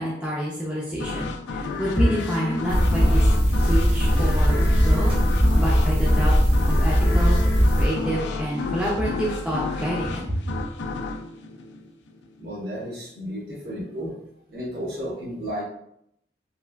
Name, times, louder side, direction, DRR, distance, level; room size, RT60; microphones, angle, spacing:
voice 1, 0.0-3.2 3.6-5.1 5.6-6.3 6.7-7.4 7.8-10.4, equal, 5° right, -6 dB, 0.4 m, -27 dB
sound 1, 1.0-12.5, left 3 dB, 80° left, 0.3 m, -31 dB
sound 2, 2.7-7.8, equal, 30° right, 0.7 m, -19 dB
voice 2, 12.4-14.2 14.5-15.6, equal, 65° right, -7 dB, 1.2 m, -33 dB
3.2 x 2.3 x 2.2 m, 0.75 s
head